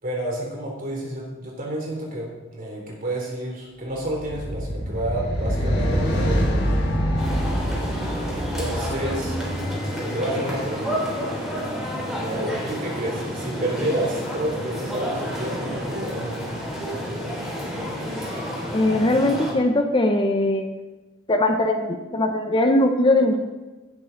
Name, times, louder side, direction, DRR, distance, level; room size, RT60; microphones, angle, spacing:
voice 1, 0.0-6.8 8.3-9.6 10.1-11.2 12.2-16.4, right 1 dB, 45° right, -2 dB, 3.6 m, -30 dB
sound 1, 4.1-10.6, equal, 65° left, 4.1 m, -25 dB
sound 2, 7.2-19.5, equal, ahead, 3.8 m, -30 dB
voice 2, 18.7-20.7 21.3-23.4, left 1 dB, 25° left, 5 dB, 0.9 m, -20 dB
17.0 x 7.6 x 4.0 m, 1.2 s
head